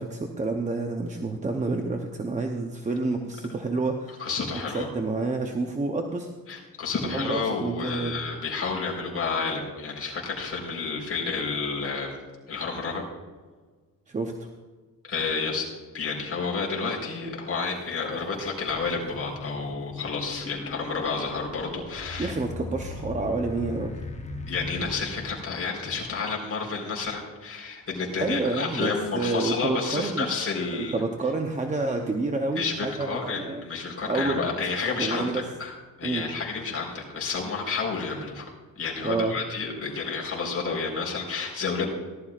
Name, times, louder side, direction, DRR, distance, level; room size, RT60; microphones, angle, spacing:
voice 1, 0.0-4.3 4.7-6.3 7.0-8.2 14.1-14.5 22.2-23.9 28.2-30.3 30.8-33.6 34.1-34.5 35.0-35.4 36.0-36.3 39.0-39.4, right 3 dB, 20° right, 3 dB, 0.8 m, -29 dB
voice 2, 4.2-4.9 6.5-12.2 12.5-13.0 15.0-15.7 15.9-22.4 24.5-31.0 32.6-35.7 36.0-38.5 38.8-41.9, left 4 dB, 40° left, -2 dB, 4.2 m, -30 dB
sound 1, 17.7-17.8 18.3-25.9, left 3 dB, 20° left, 1.0 m, -39 dB
19.0 x 12.0 x 2.4 m, 1.4 s
cardioid pair, 150°, 35 cm